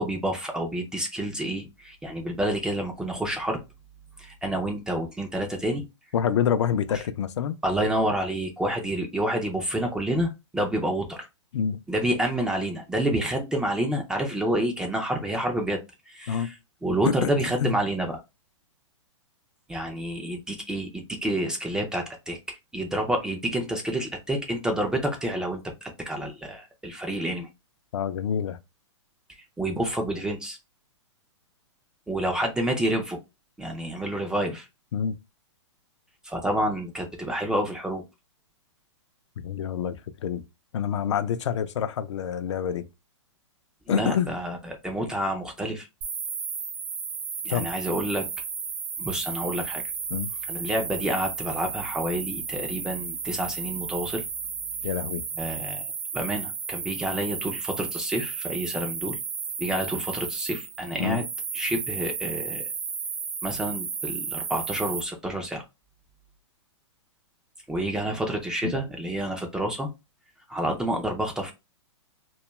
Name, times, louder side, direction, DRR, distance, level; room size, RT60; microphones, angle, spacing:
voice 1, 0.0-3.6 4.2-5.8 7.6-11.3 11.9-15.8 16.1-18.2 19.7-27.5 29.6-30.6 32.1-33.2 33.6-34.7 36.2-38.0 43.9-45.9 47.4-48.3 49.0-49.8 50.5-54.2 55.4-55.8 56.1-59.2 59.6-61.2 61.5-62.6 63.4-65.6 67.7-69.9 70.5-71.5, right 1 dB, 5° right, 0.3 m, -28 dB
voice 2, 6.1-7.6 11.5-11.8 16.3-16.5 17.0-17.3 17.6-17.7 27.9-28.6 34.9-35.2 39.4-40.4 40.7-42.9 43.9-44.3 47.5-47.7 50.1-50.3 54.8-55.2 61.0-61.2 68.6-68.7, left 8 dB, 70° left, 0.4 m, -27 dB
sound 1, 46.0-65.0, right 6 dB, 75° right, 0.7 m, -33 dB
2.2 x 2.1 x 2.9 m
hypercardioid pair, 140°, 16 cm